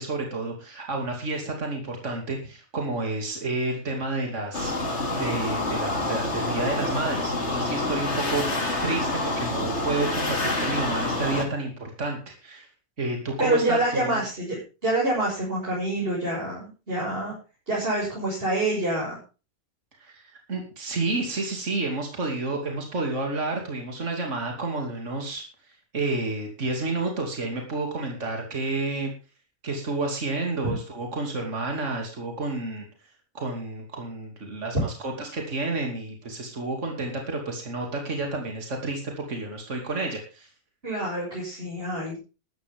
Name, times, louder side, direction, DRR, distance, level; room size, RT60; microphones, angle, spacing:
voice 1, 0.0-12.7 13.0-14.2 20.0-25.4 25.9-29.1 29.6-32.8 33.3-40.5, right 2 dB, 65° right, 1 dB, 3.1 m, -30 dB
sound 1, 4.5-11.5, left 2 dB, 60° left, 3.0 m, -27 dB
voice 2, 13.4-17.3 17.7-19.2 30.6-30.7 40.8-42.2, right 1 dB, 45° right, -6 dB, 7.1 m, -26 dB
14.0 x 13.0 x 3.7 m, 0.32 s
omnidirectional pair, 1.4 m